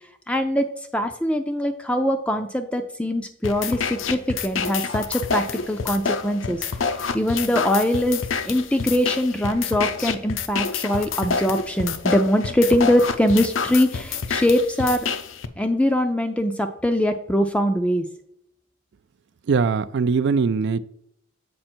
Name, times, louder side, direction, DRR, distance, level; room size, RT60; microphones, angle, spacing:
voice 1, 0.3-6.6 7.1-15.1 15.6-18.1, equal, 5° left, 6 dB, 0.4 m, -22 dB
sound 1, 3.4-15.5, left 5 dB, 80° left, 0.6 m, -28 dB
voice 2, 19.5-20.8, right 5 dB, 60° right, 15 dB, 0.3 m, -21 dB
7.6 x 5.1 x 4.4 m, 0.75 s
head